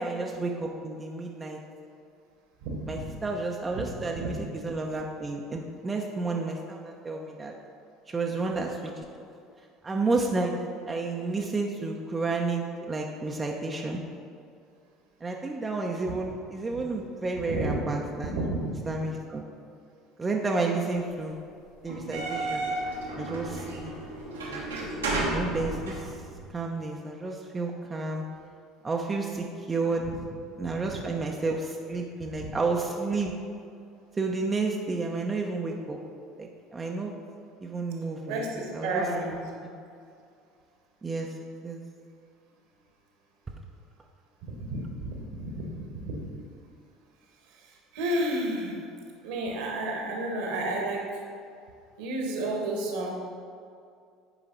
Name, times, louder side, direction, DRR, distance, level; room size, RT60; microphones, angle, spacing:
voice 1, 0.0-1.6 2.9-7.5 8.1-8.9 9.8-10.6 10.9-14.0 15.2-18.4 18.9-19.4 20.2-21.4 21.8-22.7 23.2-23.9 24.5-24.6 25.3-26.0 26.5-28.2 28.8-30.1 30.6-33.3 34.2-36.0 36.4-37.1 37.6-38.4 38.7-39.1 41.0-41.3 41.6-41.8, right 3 dB, 25° right, 0 dB, 0.7 m, -31 dB
voice 2, 2.6-3.1 3.7-3.8 4.2-4.4 16.7-16.8 17.5-17.8 18.2-18.8 30.0-30.2 32.4-32.5 38.3-39.4 44.4-45.7 46.0-46.3 47.9-48.8 49.2-51.0 52.0-53.1, right 1 dB, 65° right, 0 dB, 1.5 m, -31 dB
sound 1, 21.9-26.5, right 2 dB, 85° right, 1.4 m, -32 dB
9.1 x 5.0 x 4.0 m, 2.4 s
figure-of-eight pair, 65°, 0 cm